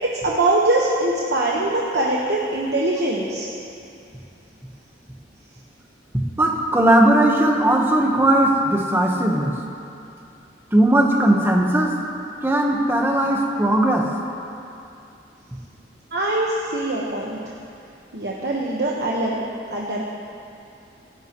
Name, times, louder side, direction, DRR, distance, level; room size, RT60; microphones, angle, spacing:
voice 1, 0.0-3.5 16.1-17.4 18.1-19.4 19.7-20.1, right 2 dB, 60° right, -4 dB, 1.3 m, -22 dB
voice 2, 6.3-9.5 10.7-11.9 12.4-14.1, right 1 dB, 10° right, 0 dB, 1.2 m, -18 dB
26.5 x 11.0 x 3.1 m, 2.6 s
head